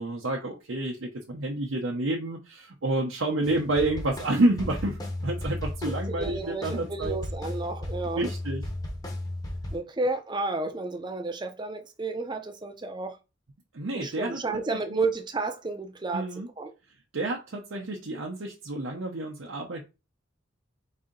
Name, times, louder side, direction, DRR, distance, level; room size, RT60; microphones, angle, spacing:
voice 1, 0.0-7.2 8.1-8.6 13.7-14.6 14.9-15.0 16.1-16.5 17.1-19.8, right 2 dB, 75° right, 0.8 m, -29 dB
sound 1, 3.4-9.8, left 1 dB, 20° left, 0.8 m, -35 dB
voice 2, 5.9-8.2 9.7-13.2 13.9-16.3 16.6-16.7, right 3 dB, 20° right, 0.6 m, -31 dB
4.1 x 2.7 x 3.8 m
head